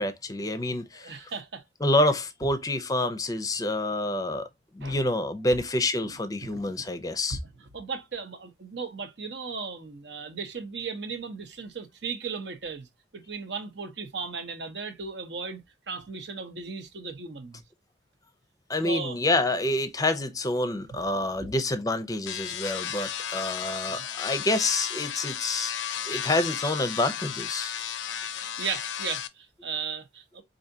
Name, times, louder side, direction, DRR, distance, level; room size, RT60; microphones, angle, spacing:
voice 1, 0.0-1.3 1.8-4.5 4.7-7.4 18.7-25.7 26.1-27.7, left 2 dB, 20° left, 0.5 m, -27 dB
voice 2, 0.9-1.6 4.8-5.0 6.4-6.5 6.8-6.9 7.7-12.9 13.1-15.6 15.9-17.6 18.8-19.2 21.1-21.5 23.8-24.0 28.6-30.4, right 5 dB, 70° right, 0.8 m, -36 dB
sound 1, 22.3-29.3, left 9 dB, 85° left, 0.5 m, -34 dB
4.8 x 2.6 x 2.6 m
head